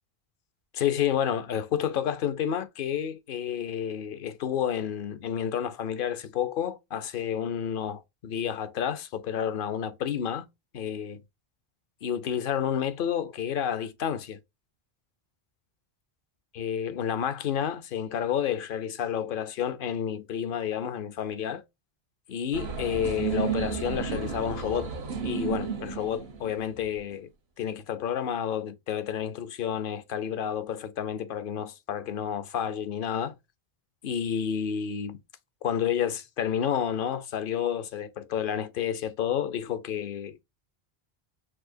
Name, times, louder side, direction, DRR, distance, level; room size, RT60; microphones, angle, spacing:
voice 1, 0.7-10.5 10.7-11.2 12.0-14.4 16.5-21.6 22.3-24.9 25.2-27.3 27.6-33.3 34.0-35.2 35.6-40.4, left 9 dB, 60° left, 0.8 m, -30 dB
sound 1, 22.5-27.0, right 6 dB, 80° right, 1.2 m, -32 dB
6.2 x 2.7 x 2.6 m
omnidirectional pair, 1.0 m